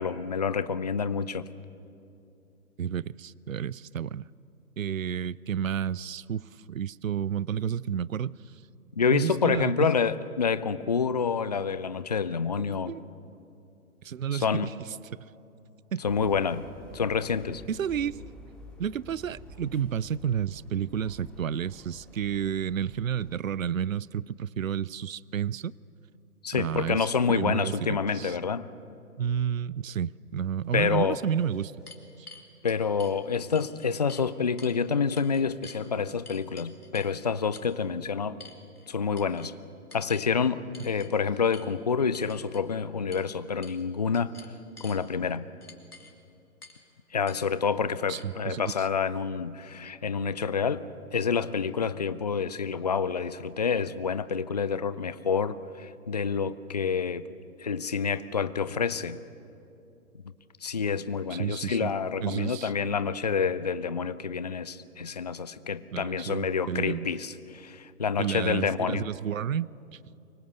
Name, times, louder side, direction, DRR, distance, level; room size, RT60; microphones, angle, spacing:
voice 1, 0.0-1.5 9.0-12.9 14.3-14.7 16.0-16.6 16.9-17.6 26.4-28.7 30.7-31.2 32.6-38.4 38.9-39.5 39.9-44.3 44.8-45.5 47.1-50.8 51.1-57.3 57.6-59.2 60.6-69.1, left 6 dB, 30° left, 16 dB, 0.5 m, -28 dB
voice 2, 2.8-4.3 4.8-8.4 9.1-9.9 12.9-13.0 14.0-14.7 15.1-15.3 15.9-16.0 17.7-18.2 18.8-25.7 26.5-28.4 29.2-31.7 32.2-32.3 48.1-48.9 61.3-61.9 62.2-62.7 65.9-67.2 68.2-70.2, right 8 dB, 60° right, 23 dB, 0.6 m, -31 dB
sound 1, 16.0-23.4, left 1 dB, ahead, 1.3 m, -49 dB
sound 2, 30.6-30.7 31.3-33.2 33.5-34.3 34.6-34.8 35.2-35.8 36.2-37.1 37.5-37.7 38.4-38.9 39.2-39.5 39.9-40.3 40.7-41.1 41.5-41.7 42.1-42.6 43.1-43.3 43.6-43.8 44.1-45.0 45.6-46.1 46.6-46.8 47.3-47.4 48.1-48.2, left 3 dB, 75° left, 3.1 m, -49 dB
24.5 x 23.0 x 8.1 m, 2.6 s
figure-of-eight pair, 130°, 45 cm